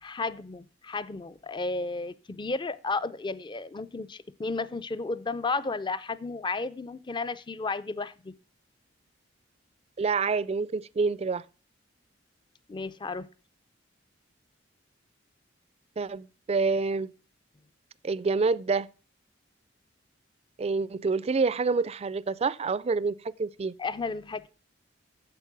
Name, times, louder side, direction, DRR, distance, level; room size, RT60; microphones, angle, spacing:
voice 1, 0.0-8.4 12.7-13.3 23.8-24.5, left 3 dB, 25° left, 0.5 m, -33 dB
voice 2, 10.0-11.4 16.0-17.1 18.0-18.9 20.6-23.7, right 4 dB, 35° right, 0.4 m, -27 dB
9.1 x 7.5 x 5.9 m
head